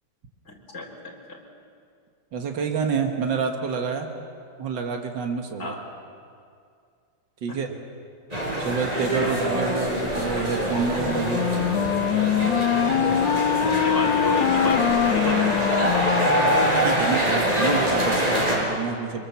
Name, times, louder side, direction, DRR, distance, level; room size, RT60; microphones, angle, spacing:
voice 1, 0.5-1.4 5.6-5.8 9.2-9.4 13.6-16.1, left 2 dB, 35° left, -1 dB, 4.1 m, -32 dB
voice 2, 2.3-4.1 4.6-5.8 7.4-7.7 8.6-11.9 16.8-19.3, right 5 dB, 75° right, 3 dB, 2.2 m, -28 dB
sound 1, 8.3-18.6, equal, 20° right, 4.6 m, -24 dB
Wind instrument woodwind instrument, 11.0-17.1, left 10 dB, 80° left, 1.6 m, -24 dB
24.5 x 22.5 x 7.3 m, 2.3 s
omnidirectional pair, 2.0 m